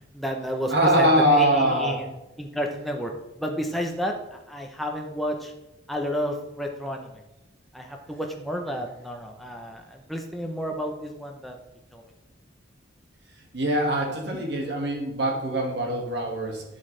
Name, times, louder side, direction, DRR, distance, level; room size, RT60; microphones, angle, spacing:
voice 1, 0.1-2.1 2.4-3.1 3.4-5.5 5.9-7.2 7.7-11.6 11.9-12.1, equal, ahead, 2 dB, 0.7 m, -31 dB
voice 2, 0.7-2.0 13.5-16.6, right 1 dB, 55° right, 1 dB, 1.8 m, -23 dB
11.0 x 6.3 x 3.3 m, 0.95 s
head